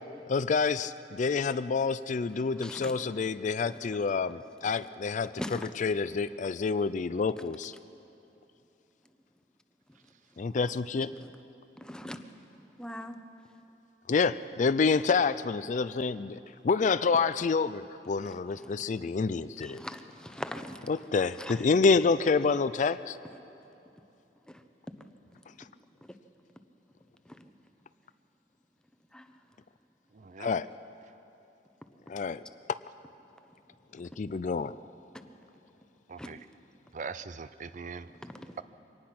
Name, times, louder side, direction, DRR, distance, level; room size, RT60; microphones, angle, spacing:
voice 1, 0.3-5.3 5.8-7.7 10.4-11.1 14.1-19.8 20.9-23.2 30.4-30.7 32.1-32.4 33.9-34.7, left 4 dB, 45° left, 14 dB, 0.4 m, -28 dB
voice 2, 2.5-3.2 3.8-3.9 5.4-5.7 7.4-7.5 11.2-11.4 11.8-12.3 12.8-13.2 18.2-18.8 19.6-20.9 21.4-21.7 24.5-24.6 26.0-26.2 27.2-27.5 29.1-29.3 35.1-35.2 36.2-36.3 38.2-38.6, left 1 dB, 5° left, 8 dB, 0.9 m, -42 dB
voice 3, 30.1-30.6 36.1-36.4 36.9-38.1, right 5 dB, 45° right, 14 dB, 0.5 m, -41 dB
24.0 x 18.5 x 6.0 m, 2.9 s
head